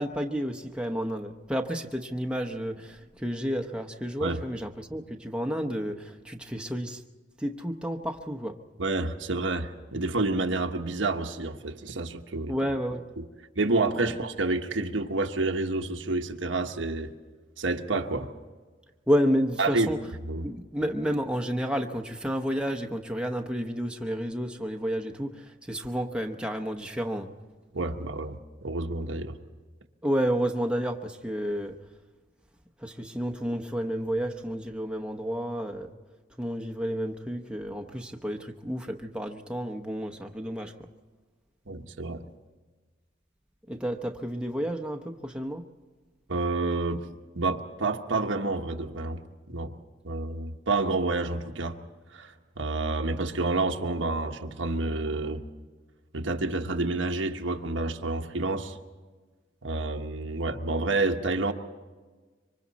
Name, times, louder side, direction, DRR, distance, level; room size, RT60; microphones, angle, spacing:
voice 1, 0.0-7.0 7.4-8.6 12.5-13.0 19.1-20.0 20.4-27.3 30.0-31.8 32.8-35.9 36.4-40.7 43.7-45.6, equal, 5° right, 3 dB, 0.9 m, -30 dB
voice 2, 8.8-12.6 13.2-13.3 13.5-17.1 17.6-18.3 19.6-19.9 20.2-20.5 27.7-29.4 41.7-42.2 46.3-47.0 47.3-49.7 50.0-51.8 52.1-55.4 56.1-58.8 59.6-61.5, right 3 dB, 85° right, 4 dB, 1.2 m, -29 dB
26.0 x 24.5 x 4.2 m, 1.4 s
head